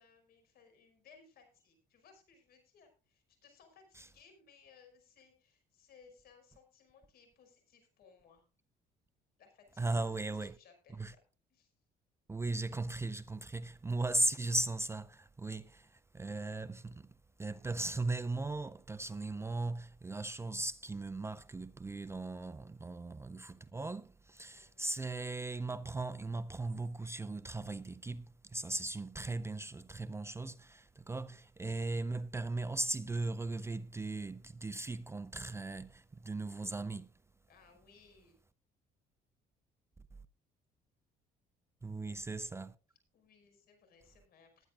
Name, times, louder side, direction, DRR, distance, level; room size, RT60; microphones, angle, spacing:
voice 1, 0.0-8.5 9.4-11.2 11.5-11.7 24.5-24.9 31.0-31.4 37.5-38.4 43.1-44.7, left 5 dB, 65° left, 5.5 m, -63 dB
voice 2, 9.8-10.6 10.9-11.1 12.3-17.1 17.4-37.1 41.8-42.8, right 2 dB, 15° right, 0.5 m, -38 dB
20.0 x 9.8 x 2.5 m
cardioid pair, 110°, 17 cm